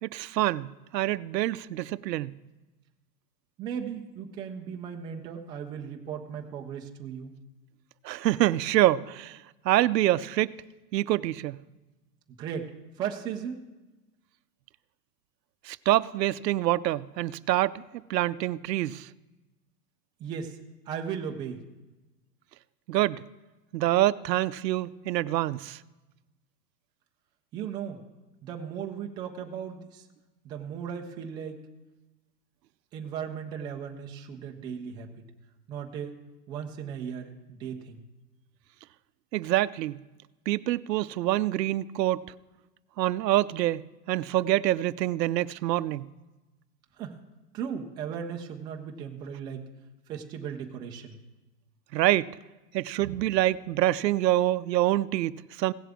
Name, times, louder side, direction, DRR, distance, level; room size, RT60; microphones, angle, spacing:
voice 1, 0.0-2.4 8.0-9.4 9.6-10.5 10.9-11.6 15.6-19.1 22.9-23.2 23.7-25.8 39.3-40.0 40.5-42.2 43.0-46.1 51.9-52.3 52.7-55.7, right 15 dB, 85° right, 0.6 m, -26 dB
voice 2, 3.6-7.3 12.4-12.7 13.0-13.6 20.2-20.6 20.9-21.6 27.5-28.0 28.4-30.1 30.4-31.6 32.9-35.2 35.7-36.1 36.5-38.0 47.0-47.2 47.5-49.7 50.1-51.2, right 7 dB, 10° right, 0.4 m, -36 dB
17.0 x 7.4 x 3.5 m
hypercardioid pair, 130°, 49 cm